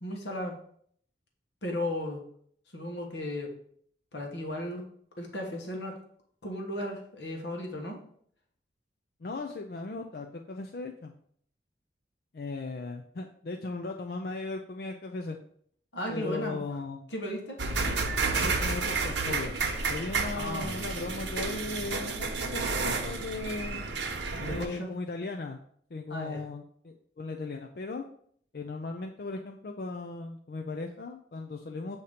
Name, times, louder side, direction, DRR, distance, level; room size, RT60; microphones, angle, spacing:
voice 1, 0.0-0.6 1.6-2.2 2.7-3.5 4.1-4.8 5.2-5.9 6.4-8.0 15.9-16.6 17.1-17.6 20.3-20.7 24.4-24.9 26.1-26.4, left 1 dB, 75° left, 1 dB, 1.3 m, -35 dB
voice 2, 9.2-11.1 12.3-15.4 16.1-17.1 18.3-19.5 19.9-23.8 24.4-25.6 25.9-28.0 28.5-32.0, left 3 dB, 55° left, 3 dB, 0.4 m, -37 dB
sound 1, 17.6-24.7, right 4 dB, 90° right, 0.9 m, -31 dB
8.0 x 2.8 x 4.9 m, 0.63 s
head